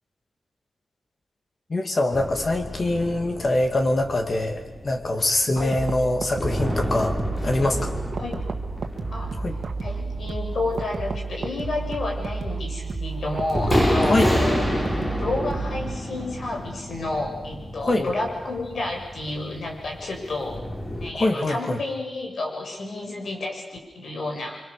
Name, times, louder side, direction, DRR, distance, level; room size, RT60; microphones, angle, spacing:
voice 1, 1.7-7.2 7.4-7.9 9.4-9.5 14.1-14.3 17.8-18.1 21.2-21.8, left 2 dB, 40° left, 5 dB, 2.6 m, -24 dB
sound 1, 2.1-21.1, left 1 dB, 20° left, 5.0 m, -30 dB
sound 2, 5.6-16.0, right 4 dB, 65° right, 2.0 m, -31 dB
voice 2, 9.8-14.7 15.1-20.6 21.0-24.6, left 2 dB, 65° left, 0 dB, 7.0 m, -30 dB
30.0 x 25.5 x 6.9 m, 1.2 s
wide cardioid pair, 170°, 0 cm